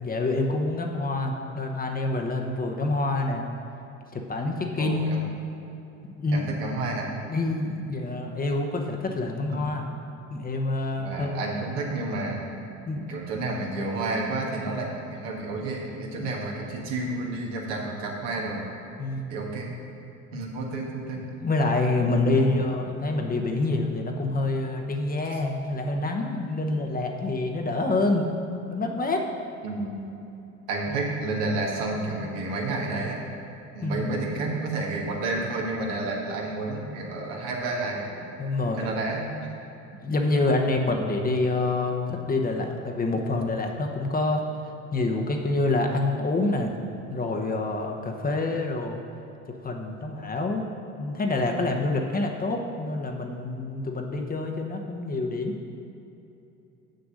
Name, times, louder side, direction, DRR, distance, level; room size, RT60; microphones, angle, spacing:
voice 1, 0.0-3.4 4.1-5.1 6.2-6.5 7.3-9.8 10.3-11.4 12.9-13.1 16.2-16.3 19.0-19.3 20.3-20.5 21.4-29.2 33.8-34.1 38.4-38.9 40.0-44.4 44.9-46.7 47.1-49.0 49.6-50.7 51.0-55.6, left 2 dB, 25° left, 2 dB, 1.0 m, -27 dB
voice 2, 4.8-5.2 6.3-7.1 9.5-9.8 11.0-12.4 13.1-18.7 19.3-19.7 20.3-21.3 22.3-22.7 25.3-25.4 29.6-30.0 30.7-33.2 33.7-38.1 38.8-39.5, right 2 dB, 70° right, -1 dB, 1.7 m, -30 dB
6.9 x 6.4 x 6.4 m, 2.9 s
hypercardioid pair, 70°, 38 cm